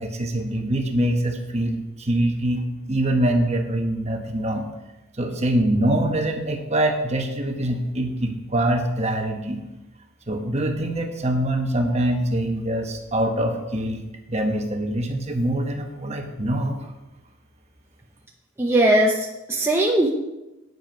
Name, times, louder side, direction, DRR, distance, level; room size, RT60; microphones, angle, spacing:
voice 1, 0.0-4.7 5.2-9.6 10.3-16.9, right 1 dB, 30° right, 4 dB, 1.1 m, -24 dB
voice 2, 18.6-20.1, right 1 dB, 10° right, -2 dB, 0.8 m, -19 dB
9.3 x 8.2 x 5.1 m, 0.98 s
head